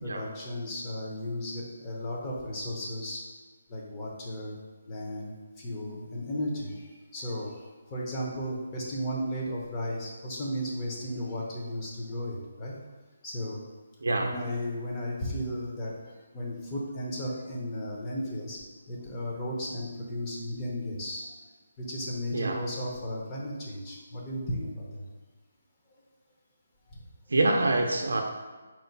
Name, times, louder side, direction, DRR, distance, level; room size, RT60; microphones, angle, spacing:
voice 1, 0.0-3.2 3.7-4.6 4.9-12.8 13.2-13.6 14.2-21.3 21.8-25.1, equal, 20° left, -4 dB, 0.6 m, -35 dB
voice 2, 27.3-28.2, right 2 dB, 90° right, 2 dB, 0.4 m, -25 dB
4.3 x 2.1 x 3.9 m, 1.3 s
hypercardioid pair, 170°, 0 cm